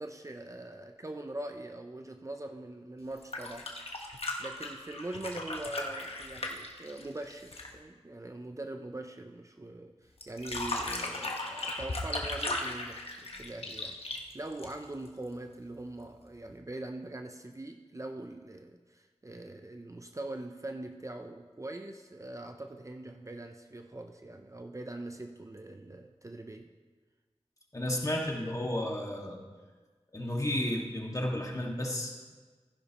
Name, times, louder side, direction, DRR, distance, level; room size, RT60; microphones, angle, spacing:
voice 1, 0.0-3.7 4.4-26.7, right 2 dB, 30° right, 5 dB, 0.6 m, -42 dB
sound 1, 3.1-7.8 10.2-15.1 16.5-16.6, left 2 dB, 60° left, 1.3 m, -37 dB
voice 2, 27.7-29.4 30.1-32.3, left 1 dB, 30° left, -1 dB, 1.9 m, -32 dB
15.0 x 10.5 x 3.0 m, 1.4 s
wide cardioid pair, 65°, 11 cm